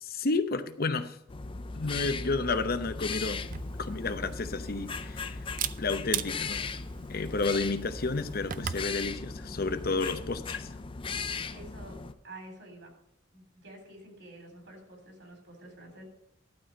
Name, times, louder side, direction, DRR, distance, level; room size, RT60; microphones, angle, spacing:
voice 1, 0.0-1.2 1.7-3.5 3.8-5.4 5.8-6.7 7.1-10.7, left 3 dB, 55° left, 10 dB, 0.8 m, -31 dB
sound 1, 1.3-12.1, left 4 dB, 30° left, 0.5 m, -38 dB
Camera, 3.4-8.9, right 9 dB, 45° right, 0.4 m, -39 dB
voice 2, 11.5-12.0 12.2-12.9 13.3-16.0, right 1 dB, 70° right, 2 dB, 3.5 m, -49 dB
12.0 x 4.2 x 7.5 m, 0.81 s
head